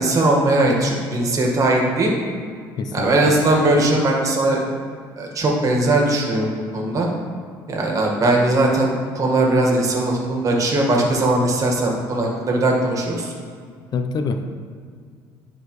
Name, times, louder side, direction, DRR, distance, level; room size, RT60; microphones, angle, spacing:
voice 1, 0.0-2.1 2.9-4.7 5.2-7.1 7.7-13.3, right 2 dB, 40° right, 0 dB, 1.7 m, -19 dB
voice 2, 2.8-3.3 13.9-14.5, left 4 dB, 50° left, 7 dB, 0.6 m, -25 dB
11.5 x 4.8 x 3.2 m, 2.1 s
supercardioid pair, 90°, 9 cm